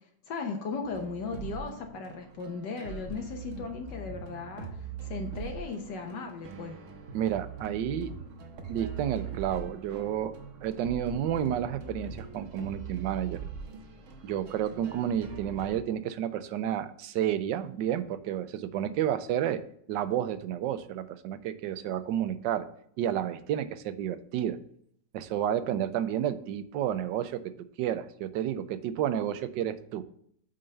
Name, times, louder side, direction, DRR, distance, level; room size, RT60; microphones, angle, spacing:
voice 1, 0.3-6.8, left 4 dB, 80° left, 3 dB, 1.5 m, -37 dB
sound 1, 0.8-15.8, right 6 dB, 55° right, 1.0 m, -42 dB
voice 2, 7.1-8.1 8.7-10.3 10.6-13.4 14.2-19.6 19.9-22.7 23.0-24.6 25.1-27.5 27.8-30.0, right 10 dB, 90° right, 11 dB, 1.3 m, -31 dB
7.9 x 3.9 x 6.5 m, 0.66 s
omnidirectional pair, 1.9 m